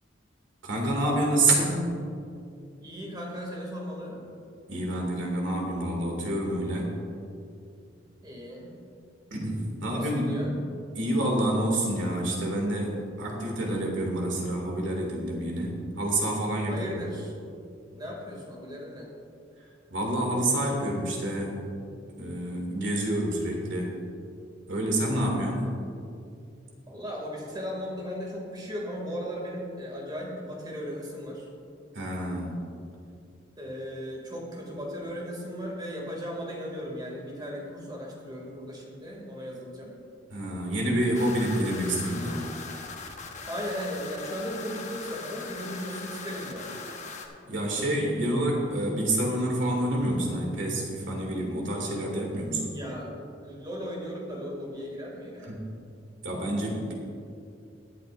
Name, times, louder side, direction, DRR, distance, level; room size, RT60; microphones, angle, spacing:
voice 1, 0.6-1.9 4.7-6.9 9.3-10.3 10.9-17.0 19.9-21.6 22.2-23.9 24.7-25.7 31.9-32.6 40.3-42.4 47.4-52.7 55.4-55.6 56.2-56.9, right 1 dB, 80° right, -1 dB, 2.5 m, -28 dB
voice 2, 2.8-4.4 8.2-8.7 9.9-10.5 16.7-17.3 17.9-19.1 26.8-31.5 33.6-39.9 43.5-46.7 52.6-53.1 53.4-55.6, equal, 25° right, -2 dB, 2.5 m, -37 dB
sound 1, 41.1-47.3, left 4 dB, 40° left, 1.1 m, -40 dB
22.0 x 8.0 x 2.6 m, 2.5 s
head